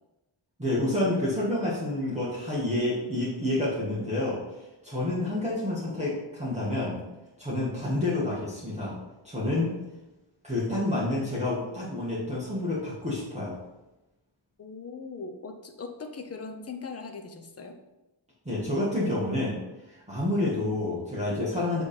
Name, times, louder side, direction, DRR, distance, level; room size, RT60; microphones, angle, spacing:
voice 1, 0.6-4.4 4.8-7.0 7.4-9.0 9.2-9.7 10.4-13.5 18.5-19.6 19.9-21.8, left 1 dB, 15° right, -8 dB, 1.9 m, -28 dB
voice 2, 14.6-17.8, left 4 dB, 30° left, 5 dB, 0.8 m, -40 dB
7.8 x 3.6 x 4.4 m, 1.0 s
wide cardioid pair, 115°, 47 cm